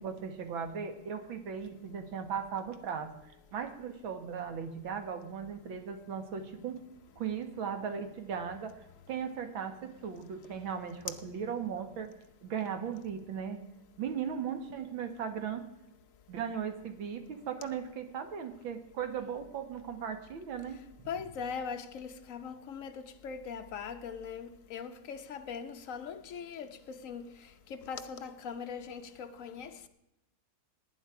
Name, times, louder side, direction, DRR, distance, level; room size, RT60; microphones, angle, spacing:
voice 1, 0.0-3.1 3.5-6.8 7.2-8.8 9.1-12.1 12.4-13.6 14.0-15.7 16.3-20.8, right 7 dB, 65° right, 2.1 m, -37 dB
voice 2, 21.1-22.9 23.2-26.7 27.0-27.3 27.7-29.9, left 6 dB, 65° left, 0.8 m, -40 dB
18.5 x 9.1 x 4.8 m
omnidirectional pair, 2.4 m